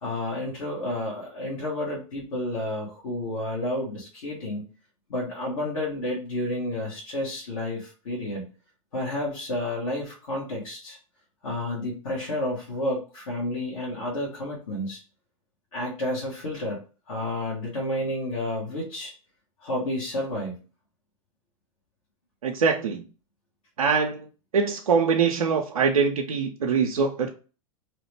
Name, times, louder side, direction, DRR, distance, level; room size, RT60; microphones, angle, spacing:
voice 1, 0.0-4.7 5.1-8.4 8.9-11.0 11.4-15.0 15.7-16.8 17.1-19.1 19.6-20.6, left 1 dB, 75° left, -4 dB, 1.2 m, -30 dB
voice 2, 22.4-23.0 23.8-24.3 24.5-27.3, right 5 dB, 90° right, 1 dB, 0.4 m, -23 dB
2.8 x 2.1 x 3.1 m, 0.35 s
hypercardioid pair, 100°, 18 cm